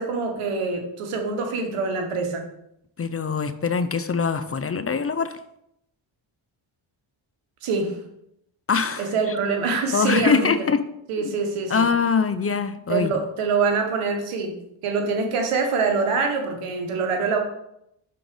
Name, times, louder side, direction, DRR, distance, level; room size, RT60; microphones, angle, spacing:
voice 1, 0.0-2.4 7.6-8.0 9.0-10.7 11.1-11.9 12.9-14.5 14.8-17.4, right 4 dB, 90° right, 4 dB, 1.2 m, -25 dB
voice 2, 3.0-5.4 8.7-9.1 9.9-10.8 11.2-11.3 11.7-13.1, left 5 dB, 30° left, 11 dB, 0.5 m, -23 dB
6.0 x 3.9 x 5.1 m, 0.78 s
cardioid pair, 55°, 50 cm